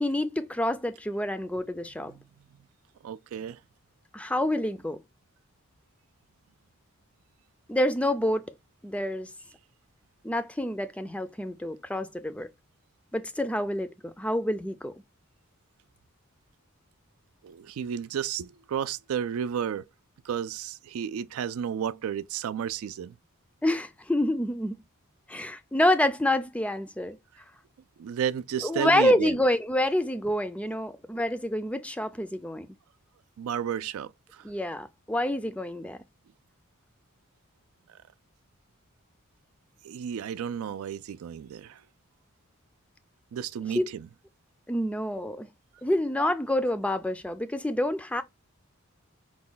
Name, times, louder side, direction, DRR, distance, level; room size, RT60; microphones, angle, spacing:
voice 1, 0.0-2.1 4.1-5.0 7.7-8.4 8.8-9.3 10.2-12.5 13.1-14.9 23.6-24.8 25.3-27.2 28.6-32.7 34.4-36.0 43.7-43.9 44.7-45.5 45.8-48.2, left 1 dB, 5° left, 0.3 m, -27 dB
voice 2, 3.0-3.6 17.4-19.8 20.2-23.1 28.0-29.3 33.4-34.4 39.8-41.8 43.3-44.1, right 8 dB, 85° right, 0.3 m, -32 dB
4.9 x 2.2 x 3.8 m
head